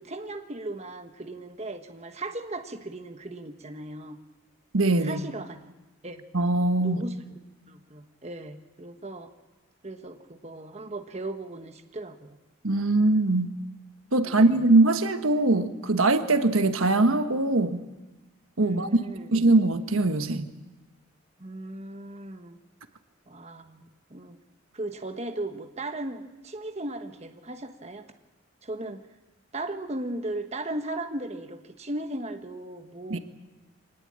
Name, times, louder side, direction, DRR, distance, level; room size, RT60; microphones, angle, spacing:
voice 1, 0.0-4.2 5.0-5.7 6.0-6.2 6.8-7.4 7.7-9.3 9.8-12.4 14.2-14.7 18.6-19.3 21.4-22.6 23.3-24.4 24.7-28.0 28.6-29.0 29.5-33.2, right 2 dB, 30° right, 6 dB, 1.3 m, -37 dB
voice 2, 4.7-5.2 6.3-7.0 12.6-13.6 14.1-17.9 18.6-19.0 19.3-20.5 33.1-33.2, right 2 dB, 80° right, 8 dB, 1.4 m, -22 dB
24.0 x 19.5 x 8.8 m, 1.1 s
head